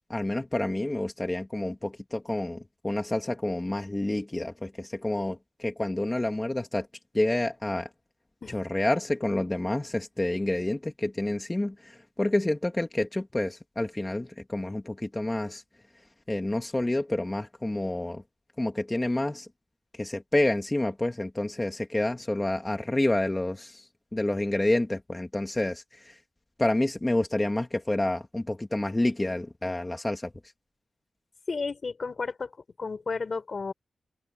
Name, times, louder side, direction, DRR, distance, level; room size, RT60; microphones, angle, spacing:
voice 1, 0.1-6.9 7.1-7.9 8.5-15.6 16.3-18.2 18.6-19.5 19.9-26.2 26.6-30.3, left 1 dB, 15° left, 1.7 m, -28 dB
voice 2, 31.5-32.5 32.8-33.7, left 4 dB, 50° left, 3.6 m, -32 dB
wide cardioid pair, 95°, 0 cm